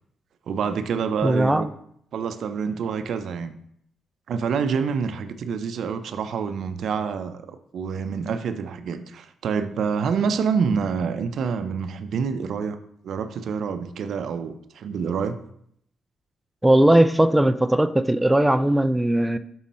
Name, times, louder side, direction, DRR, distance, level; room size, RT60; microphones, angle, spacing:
voice 1, 0.5-1.7 2.1-3.5 4.3-12.8 13.0-15.4, right 6 dB, 70° right, 10 dB, 0.5 m, -27 dB
voice 2, 1.2-1.7 16.6-19.4, right 1 dB, 10° right, 11 dB, 0.4 m, -18 dB
6.3 x 5.2 x 4.2 m, 0.69 s
cardioid pair, 75°, 0 cm